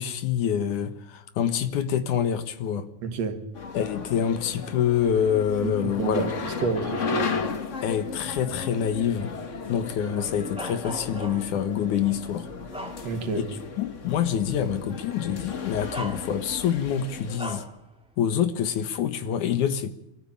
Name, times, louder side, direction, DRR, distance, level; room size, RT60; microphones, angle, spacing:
voice 1, 0.0-2.9 3.7-6.3 6.7-6.8 7.8-9.3 9.7-12.5 13.8-17.6 18.2-19.9, left 8 dB, 75° left, 2.8 m, -26 dB
voice 2, 3.0-3.4 5.6-7.4 13.0-13.4, right 5 dB, 60° right, 2.8 m, -30 dB
sound 1, 3.5-17.4, left 4 dB, 50° left, 0.9 m, -35 dB
Bark, 10.6-11.6 12.2-13.5 13.9-14.1 15.2-15.3 15.9-16.7 17.4-17.8, equal, ahead, 1.4 m, -38 dB
23.5 x 14.5 x 8.6 m
omnidirectional pair, 3.5 m